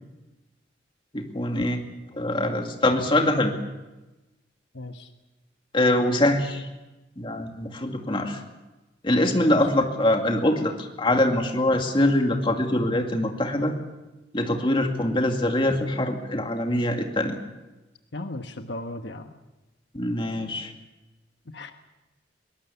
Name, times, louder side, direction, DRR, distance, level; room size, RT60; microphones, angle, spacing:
voice 1, 1.1-1.8 2.1-3.5 5.7-6.7 7.2-8.4 9.0-13.8 14.3-17.4 19.9-20.7, left 1 dB, 30° left, 3 dB, 2.3 m, -23 dB
voice 2, 4.7-5.1 9.3-9.6 18.1-19.4 21.5-21.7, left 2 dB, 70° left, 6 dB, 1.2 m, -36 dB
22.5 x 19.0 x 7.1 m, 1.1 s
head